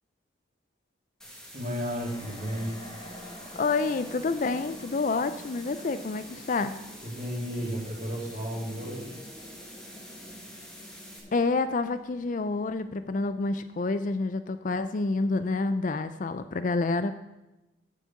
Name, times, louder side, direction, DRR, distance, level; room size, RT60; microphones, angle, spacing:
sound 1, 1.2-11.2, equal, 5° left, 1.4 m, -47 dB
voice 1, 1.5-2.8 7.0-9.1, equal, 40° right, -4 dB, 3.1 m, -33 dB
sound 2, 1.9-13.3, left 1 dB, 20° left, 1.1 m, -48 dB
voice 2, 3.6-6.7 11.3-17.1, left 3 dB, 40° left, 11 dB, 0.4 m, -28 dB
7.2 x 6.6 x 7.6 m, 0.99 s
head